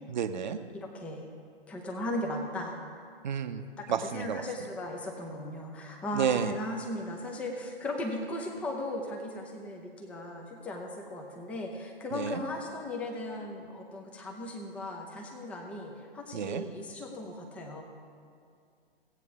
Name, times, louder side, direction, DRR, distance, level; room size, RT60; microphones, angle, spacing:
voice 1, 0.1-0.6 3.2-4.4 6.1-6.5 12.1-12.4 16.3-16.6, right 7 dB, 50° right, 9 dB, 0.7 m, -31 dB
voice 2, 0.7-1.3 1.7-2.7 3.8-17.8, left 1 dB, 5° left, 2 dB, 0.5 m, -37 dB
16.0 x 8.3 x 3.6 m, 2.3 s
figure-of-eight pair, 125°, 31 cm